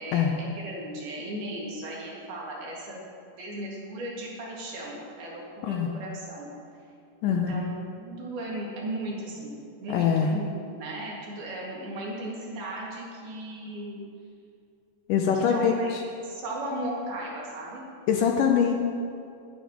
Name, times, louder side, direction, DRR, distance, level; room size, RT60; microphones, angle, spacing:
voice 1, 0.0-3.0 3.4-6.5 7.3-7.7 8.0-14.0 15.3-16.0 16.2-17.9, right 1 dB, 75° right, -4 dB, 4.0 m, -36 dB
voice 2, 7.2-7.6 9.9-10.3 15.1-16.0 18.1-18.7, left 7 dB, 80° left, 2 dB, 2.1 m, -23 dB
19.5 x 9.3 x 3.1 m, 2.5 s
omnidirectional pair, 4.4 m